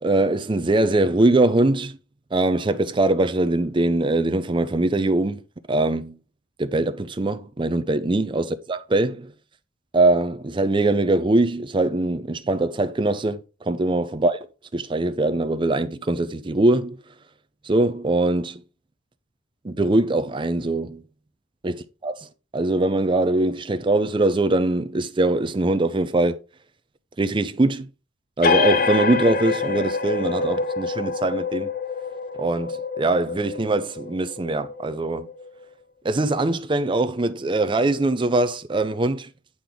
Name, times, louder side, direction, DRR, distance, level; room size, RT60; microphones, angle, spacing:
voice 1, 0.0-1.9 2.3-5.4 5.7-6.1 6.6-9.3 9.9-14.4 14.7-17.0 17.7-18.6 19.6-21.0 21.6-21.7 22.0-22.1 22.5-26.4 27.2-27.9 28.4-31.7 32.4-35.3 36.0-39.3, right 2 dB, 25° right, 0.5 m, -22 dB
sound 1, 28.4-35.6, left 4 dB, 50° left, 0.7 m, -26 dB
8.6 x 3.9 x 4.5 m
head